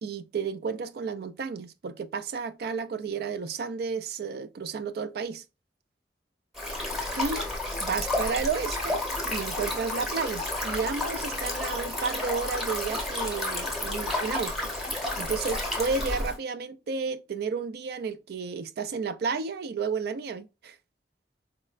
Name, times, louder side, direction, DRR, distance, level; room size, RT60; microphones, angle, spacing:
voice 1, 0.0-5.4 7.2-7.5 7.8-9.0 9.3-14.7 15.2-20.8, right 5 dB, 60° right, 0.3 m, -32 dB
Stream, 6.5-16.3, left 2 dB, ahead, 0.8 m, -31 dB
4.1 x 2.1 x 2.3 m
head